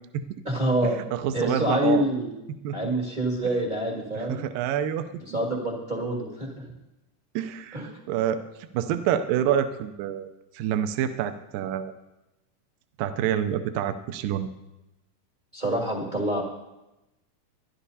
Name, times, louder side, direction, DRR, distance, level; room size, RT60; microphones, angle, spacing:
voice 1, 0.4-1.0 1.3-2.3 2.7-4.4 5.3-6.6 7.7-7.9 15.5-16.4, right 1 dB, 35° right, -3 dB, 0.7 m, -26 dB
voice 2, 1.1-2.0 2.6-2.8 4.1-5.1 7.4-8.4 8.7-10.3 10.5-11.9 13.0-14.5, right 10 dB, 85° right, 9 dB, 2.3 m, -27 dB
22.0 x 12.0 x 2.8 m, 0.95 s
omnidirectional pair, 4.1 m